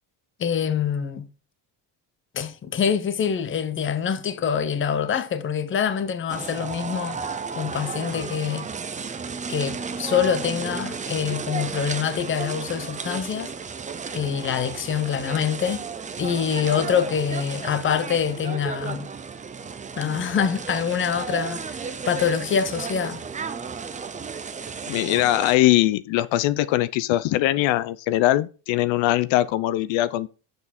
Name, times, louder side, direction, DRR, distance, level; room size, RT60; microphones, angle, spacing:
voice 1, 0.4-1.3 2.3-7.2 7.6-8.7 9.5-13.5 14.1-15.9 16.2-19.1 20.0-23.2, left 7 dB, 25° left, 0.8 m, -25 dB
sound 1, 6.3-25.6, right 5 dB, 15° right, 0.6 m, -33 dB
voice 2, 24.9-30.3, left 15 dB, 80° left, 0.7 m, -21 dB
7.8 x 7.0 x 4.2 m
cardioid pair, 155°, 45 cm